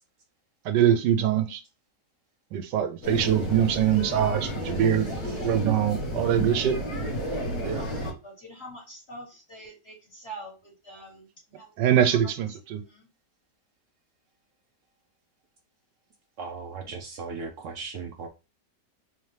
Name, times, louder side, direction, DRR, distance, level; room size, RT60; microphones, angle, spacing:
voice 1, 0.6-1.6 2.5-5.1 5.4-6.8 7.6-7.8 11.8-12.8, right 10 dB, 85° right, 1.3 m, -23 dB
sound 1, 3.0-8.1, equal, 65° left, 1.9 m, -32 dB
voice 2, 5.2-5.6 16.4-18.3, right 4 dB, 65° right, 0.8 m, -38 dB
voice 3, 7.4-11.7 12.8-13.1, right 1 dB, 35° left, 2.5 m, -45 dB
4.1 x 2.9 x 3.2 m
omnidirectional pair, 1.8 m